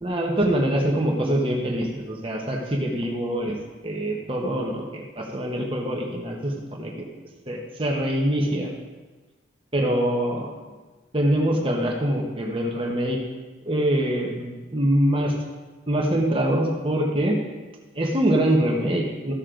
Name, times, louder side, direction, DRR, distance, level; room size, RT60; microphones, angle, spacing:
voice 1, 0.0-3.6 3.8-7.1 7.4-8.7 9.7-10.5 11.1-13.2 13.6-15.3 15.9-17.4 17.9-19.3, right 1 dB, 30° right, 0 dB, 1.4 m, -24 dB
14.5 x 6.5 x 3.9 m, 1.3 s
head